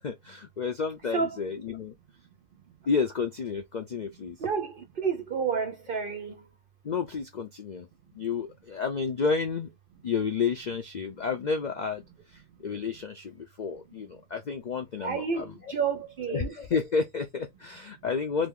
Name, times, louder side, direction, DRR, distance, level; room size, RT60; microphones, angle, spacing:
voice 1, 0.0-1.9 2.9-4.4 6.8-7.9 8.2-9.7 10.0-12.0 12.6-15.4 16.3-18.5, left 5 dB, 80° left, 0.4 m, -30 dB
voice 2, 1.1-1.4 4.4-6.4 15.0-16.5, right 6 dB, 60° right, 0.6 m, -30 dB
2.8 x 2.6 x 3.6 m
omnidirectional pair, 1.5 m